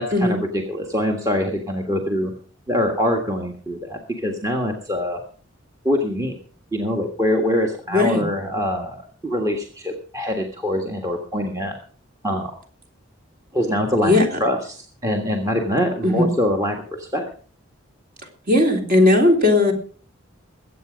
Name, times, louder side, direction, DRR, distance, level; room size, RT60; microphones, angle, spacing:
voice 1, 0.0-2.3 2.7-5.2 5.8-6.3 6.7-9.0 9.2-11.7 12.2-12.5 13.5-14.1 14.4-17.3, left 1 dB, 15° right, 3 dB, 1.5 m, -24 dB
voice 2, 7.9-8.2 14.0-14.3 16.0-16.3 18.5-19.7, left 2 dB, 45° right, 3 dB, 3.4 m, -16 dB
21.5 x 8.5 x 5.1 m, 0.41 s
head